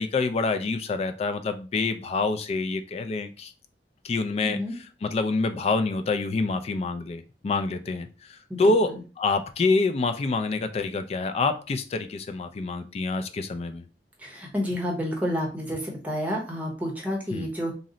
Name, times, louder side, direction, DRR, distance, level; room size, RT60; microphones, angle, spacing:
voice 1, 0.0-3.5 4.0-4.6 5.0-13.9 17.3-17.5, left 3 dB, 35° left, 0.3 m, -26 dB
voice 2, 4.4-4.8 8.5-9.0 14.2-17.7, equal, 10° right, 0.8 m, -30 dB
2.6 x 2.0 x 3.8 m
head